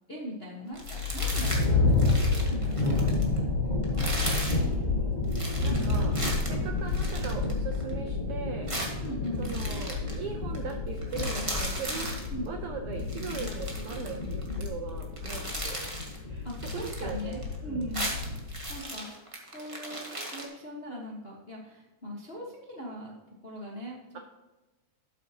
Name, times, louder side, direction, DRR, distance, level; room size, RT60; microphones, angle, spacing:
voice 1, 0.1-4.1 5.6-6.2 9.0-9.6 12.3-12.5 16.4-18.2 18.7-19.1 19.4-23.1 23.4-24.2, equal, 45° left, -3 dB, 0.7 m, -40 dB
sound 1, 0.7-18.8, left 3 dB, 25° left, 1.0 m, -30 dB
sound 2, 0.7-1.7 1.9-3.4 3.8-4.6 5.3-7.9 8.7-10.2 10.5-10.7 11.0-12.3 13.0-14.7 15.0-16.2 16.5-17.5 17.8-20.4, right 1 dB, 15° right, 1.1 m, -37 dB
voice 2, 4.4-5.2 5.6-6.1 6.5-8.7 9.4-16.5 16.7-17.9, right 5 dB, 75° right, 3 dB, 1.3 m, -39 dB
12.5 x 8.4 x 2.9 m, 1.2 s
omnidirectional pair, 3.5 m